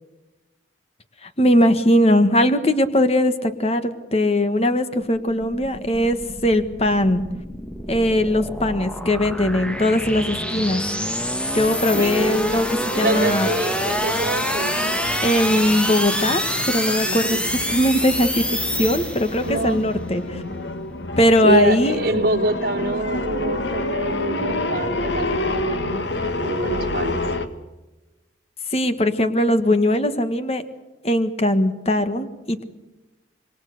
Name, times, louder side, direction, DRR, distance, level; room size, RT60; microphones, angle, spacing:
voice 1, 1.2-6.2 6.4-7.3 7.9-10.8 11.5-12.7 13.0-13.5 15.2-18.5 18.7-20.4 21.2-22.0 28.7-30.6 31.0-32.6, left 1 dB, 35° left, 10 dB, 1.6 m, -20 dB
sound 1, 5.0-19.6, equal, 5° left, 1.5 m, -27 dB
sound 2, 11.5-27.5, left 2 dB, 70° left, 1.7 m, -29 dB
voice 2, 11.9-12.4 12.9-15.0 17.0-17.4 19.4-19.9 21.4-26.0 26.4-27.2, right 1 dB, 50° right, 0 dB, 3.1 m, -26 dB
27.0 x 22.5 x 6.7 m, 1.1 s
head